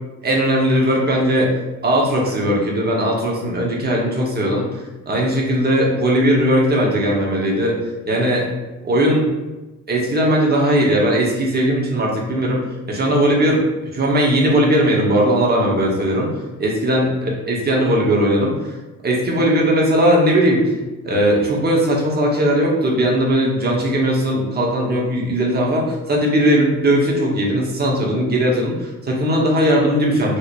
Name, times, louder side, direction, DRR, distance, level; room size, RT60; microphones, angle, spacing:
voice 1, 0.2-1.5 1.8-7.8 8.1-8.5 8.8-9.3 9.9-13.6 13.9-16.3 16.6-17.1 17.5-18.8 19.0-20.8 21.0-30.4, equal, 30° right, -2 dB, 1.1 m, -18 dB
4.7 x 3.0 x 2.6 m, 1.1 s
cardioid pair, 90°, 30 cm